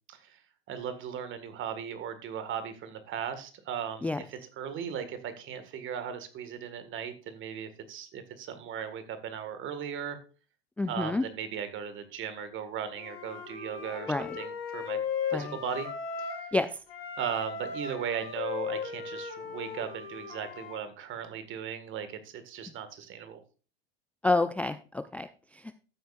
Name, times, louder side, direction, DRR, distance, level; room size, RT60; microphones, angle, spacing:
voice 1, 0.1-0.4 0.7-10.2 10.9-15.0 15.3-15.9 16.2-16.5 17.2-23.4, right 8 dB, 40° right, 10 dB, 1.8 m, -37 dB
voice 2, 10.8-11.2 14.1-14.4 15.3-15.6 16.5-16.7 24.2-25.8, left 2 dB, 5° left, 10 dB, 0.4 m, -29 dB
Wind instrument woodwind instrument, 12.9-16.6 16.9-20.8, left 6 dB, 80° left, 3.6 m, -37 dB
14.0 x 7.9 x 2.5 m, 0.34 s
hypercardioid pair, 90°, 30 cm